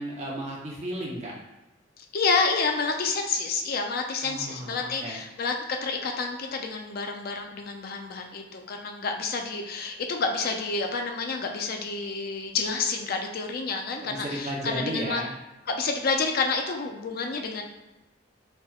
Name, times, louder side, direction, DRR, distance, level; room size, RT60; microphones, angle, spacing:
voice 1, 0.0-1.3 4.2-5.2 14.0-15.3, right 1 dB, 35° right, -4 dB, 0.6 m, -34 dB
voice 2, 2.0-15.2 15.7-17.7, left 4 dB, 55° left, 3 dB, 0.4 m, -29 dB
4.2 x 2.1 x 2.3 m, 1.0 s
head